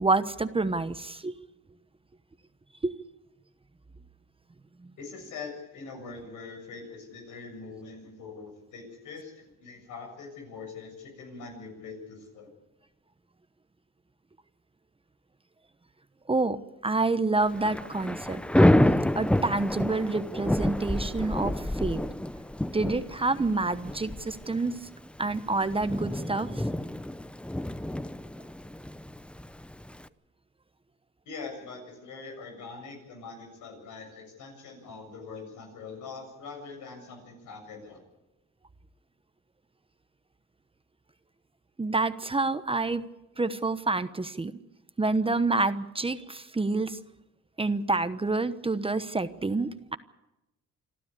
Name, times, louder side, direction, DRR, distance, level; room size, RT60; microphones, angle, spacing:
voice 1, 0.0-1.3 2.8-2.9 4.8-4.9 16.3-16.6 16.8-18.4 19.1-22.0 22.7-24.9 25.2-26.6 41.8-43.0 43.4-44.5 45.0-47.0 47.6-50.0, right 3 dB, 20° right, 12 dB, 1.0 m, -28 dB
voice 2, 5.0-12.5 31.3-38.0, left 4 dB, 85° left, 3 dB, 7.4 m, -43 dB
Thunder / Rain, 17.4-30.1, left 1 dB, 5° left, 0.7 m, -28 dB
26.5 x 13.0 x 8.5 m, 0.95 s
cardioid pair, 90°, 30 cm